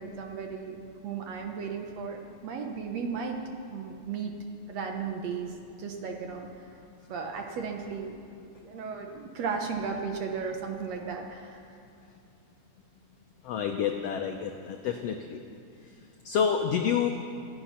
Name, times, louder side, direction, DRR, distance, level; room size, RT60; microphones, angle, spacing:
voice 1, 0.0-3.4 3.7-4.3 4.7-6.5 7.1-8.2 8.6-11.6, right 5 dB, 65° right, 3 dB, 1.8 m, -35 dB
voice 2, 13.4-15.4 16.2-17.1, left 7 dB, 80° left, 4 dB, 1.4 m, -28 dB
27.0 x 9.1 x 5.8 m, 2.5 s
omnidirectional pair, 3.8 m